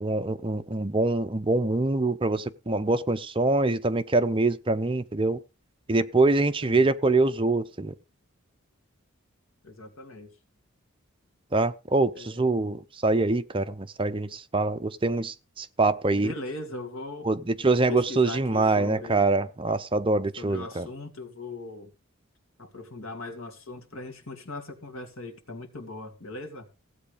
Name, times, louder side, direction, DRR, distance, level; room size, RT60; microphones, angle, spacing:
voice 1, 0.0-5.4 5.9-7.9 11.5-16.3 17.2-20.9, right 2 dB, 25° right, 0.7 m, -24 dB
voice 2, 9.6-10.3 12.1-12.5 16.1-17.3 17.6-19.3 20.4-21.9 22.6-26.7, left 2 dB, 70° left, 2.8 m, -39 dB
16.0 x 8.4 x 5.1 m
head